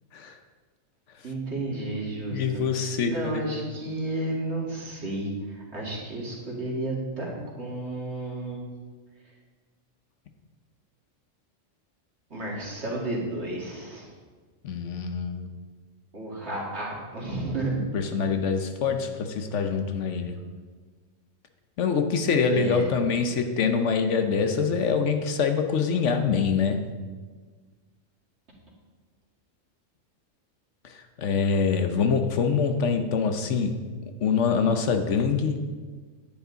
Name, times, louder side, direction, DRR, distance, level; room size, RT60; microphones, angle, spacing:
voice 1, 1.2-8.7 12.3-14.1 16.1-17.7 22.5-22.9, right 2 dB, 55° right, -3 dB, 2.5 m, -32 dB
voice 2, 2.3-3.4 14.6-15.5 17.9-20.3 21.8-26.8 30.8-33.8 34.2-35.6, left 5 dB, 70° left, 7 dB, 1.1 m, -25 dB
9.9 x 9.5 x 4.0 m, 1.5 s
omnidirectional pair, 1.3 m